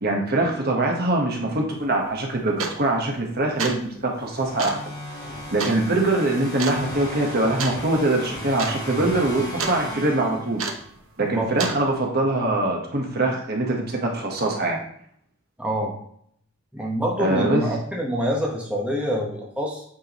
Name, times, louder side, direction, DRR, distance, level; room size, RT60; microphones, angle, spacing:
voice 1, 0.0-4.8 5.5-10.6 11.2-14.8 17.2-17.6, right 2 dB, 50° right, 0 dB, 1.3 m, -23 dB
sound 1, 1.7-1.8 2.6-3.0 3.4-3.9 4.6-4.9 5.6-5.8 6.6-6.8 7.6-7.8 8.1-8.2 8.5-8.8 9.1-9.8 10.6-10.9 11.6-11.8, right 4 dB, 75° right, 0.9 m, -29 dB
sound 2, 4.2-10.9, equal, 20° left, 2.4 m, -35 dB
voice 2, 15.6-15.9 16.7-19.8, equal, 5° right, -2 dB, 1.1 m, -26 dB
8.6 x 4.6 x 3.1 m, 0.65 s
head